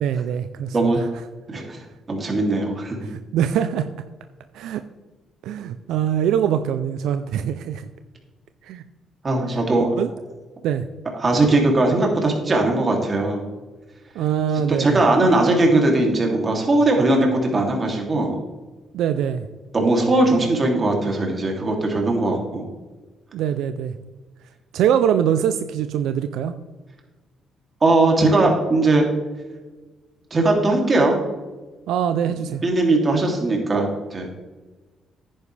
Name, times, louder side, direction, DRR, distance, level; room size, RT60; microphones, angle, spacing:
voice 1, 0.0-1.1 3.0-3.9 4.5-4.8 5.4-7.9 8.6-8.8 10.0-10.1 10.6-10.9 14.2-15.0 18.9-19.5 23.3-23.9 24.7-26.5 31.9-32.6, right 9 dB, 85° right, 9 dB, 0.5 m, -23 dB
voice 2, 0.7-1.0 1.5-1.8 2.1-3.0 9.2-9.9 11.2-13.4 14.7-18.4 19.7-22.7 27.8-29.1 30.3-31.2 32.6-34.3, right 2 dB, 35° right, 1 dB, 2.8 m, -19 dB
10.0 x 9.6 x 3.4 m, 1.2 s
cardioid pair, 90°, 0 cm